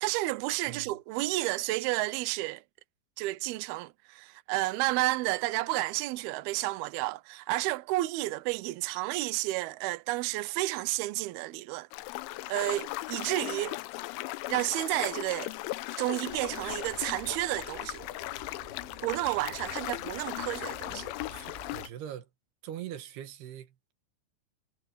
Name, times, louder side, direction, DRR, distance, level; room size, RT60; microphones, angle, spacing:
voice 1, 0.0-2.6 3.2-11.9 12.5-13.8 14.5-15.5 16.0-18.1 19.0-21.1, right 19 dB, 85° right, 2.2 m, -31 dB
sound 1, 11.9-21.9, left 18 dB, 85° left, 3.2 m, -38 dB
sound 2, 16.3-21.9, right 1 dB, 10° right, 7.6 m, -50 dB
voice 2, 21.3-22.3 22.6-23.9, right 10 dB, 65° right, 3.3 m, -42 dB
omnidirectional pair, 5.5 m